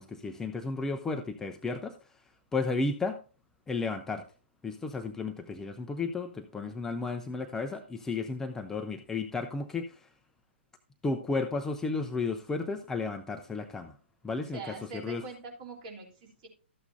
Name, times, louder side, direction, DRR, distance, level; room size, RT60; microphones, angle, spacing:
voice 1, 0.0-2.0 2.5-3.2 3.7-4.2 4.6-10.1 11.0-13.9 14.2-15.2, left 3 dB, 5° left, 5 dB, 0.5 m, -33 dB
voice 2, 14.4-16.5, right 3 dB, 40° right, 1 dB, 3.3 m, -43 dB
13.0 x 8.1 x 2.6 m, 0.36 s
figure-of-eight pair, 125°, 6 cm